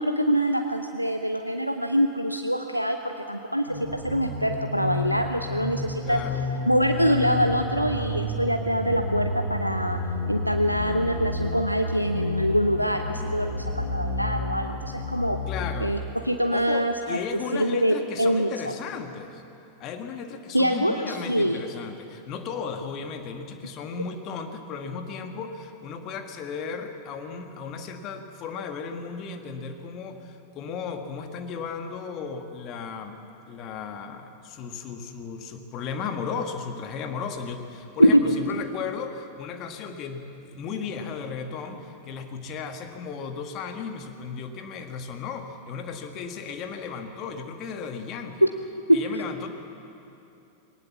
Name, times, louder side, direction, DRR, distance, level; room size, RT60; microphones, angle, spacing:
voice 1, 0.0-6.2 6.7-10.0 10.3-15.4 15.8-16.0 16.2-17.2 17.5-18.7 20.5-21.6 38.0-38.4 48.4-48.5 48.9-49.0, equal, 90° right, 6 dB, 0.7 m, -24 dB
sound 1, 3.7-15.7, left 2 dB, 85° left, 5.9 m, -31 dB
voice 2, 6.0-6.4 15.5-15.9 16.5-19.4 19.8-33.2 33.5-40.2 40.5-48.4 48.9-49.5, left 6 dB, 35° left, 6 dB, 1.6 m, -35 dB
19.5 x 18.5 x 7.2 m, 2.8 s
figure-of-eight pair, 90°, 0 cm